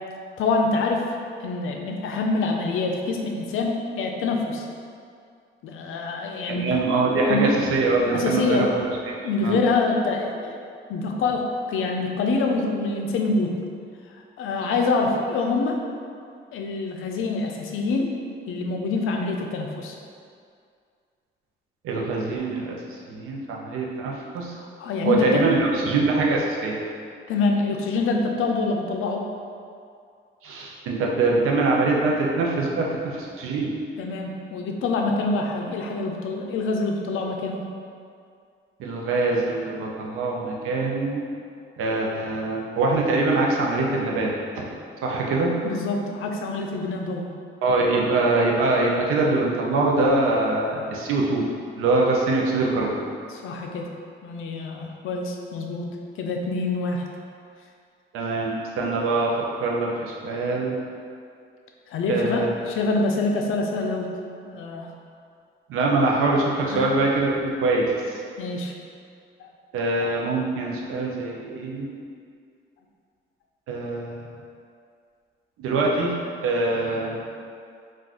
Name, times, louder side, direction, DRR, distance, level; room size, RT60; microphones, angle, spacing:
voice 1, 0.4-1.1 1.4-4.7 5.6-6.7 7.3-7.5 8.1-8.7 9.2-10.6 10.9-13.5 14.4-15.8 16.5-18.1 18.5-20.0 24.8-25.4 27.3-29.3 34.0-37.7 45.6-47.3 53.3-53.9 54.2-55.9 56.2-57.1 61.9-64.1 64.4-64.9 66.7-66.9 68.4-68.7 69.4-69.5, left 3 dB, 75° left, 1 dB, 0.4 m, -25 dB
voice 2, 6.5-8.8 9.2-9.6 21.8-22.7 23.1-24.5 25.0-26.8 30.4-33.7 38.8-41.2 41.8-44.3 44.6-44.7 45.0-45.5 47.6-51.4 51.8-53.0 58.1-60.7 62.1-62.5 65.7-68.2 69.7-71.9 73.7-74.3 75.6-76.1 76.4-77.2, right 2 dB, 90° right, -2 dB, 0.5 m, -23 dB
2.4 x 2.3 x 3.5 m, 2.3 s
cardioid pair, 70°, 21 cm